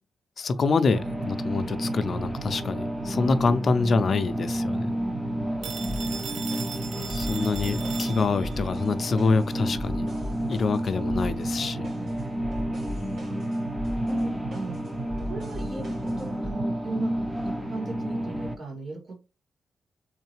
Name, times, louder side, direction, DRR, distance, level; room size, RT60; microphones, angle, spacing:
voice 1, 0.4-4.8 7.1-10.1 10.5-11.9, left 4 dB, 50° left, 0.4 m, -26 dB
sound 1, 0.9-18.6, right 1 dB, 15° right, 0.6 m, -30 dB
voice 2, 4.7-5.4 14.1-14.8 15.2-19.2, right 2 dB, 50° right, 2.1 m, -38 dB
Telephone, 5.6-8.6, right 6 dB, 90° right, 0.4 m, -38 dB
sound 2, 5.8-16.5, left 1 dB, 75° right, 2.1 m, -39 dB
3.6 x 3.2 x 3.1 m
wide cardioid pair, 125°, 0 cm